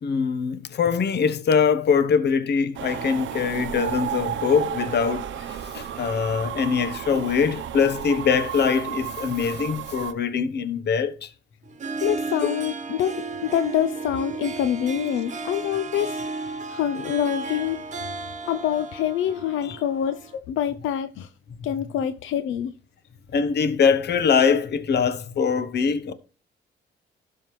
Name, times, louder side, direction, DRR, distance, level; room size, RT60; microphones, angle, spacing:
voice 1, 0.0-11.3 19.6-19.8 23.3-26.1, left 6 dB, 55° left, 1.0 m, -23 dB
sound 1, 2.8-10.1, right 10 dB, 70° right, 0.8 m, -32 dB
Harp, 11.6-20.4, right 3 dB, 40° right, 1.2 m, -34 dB
voice 2, 12.0-13.1 13.4-17.8 18.5-21.3 21.6-22.7, left 10 dB, 80° left, 0.5 m, -26 dB
12.5 x 5.7 x 3.1 m
cardioid pair, 90°, 20 cm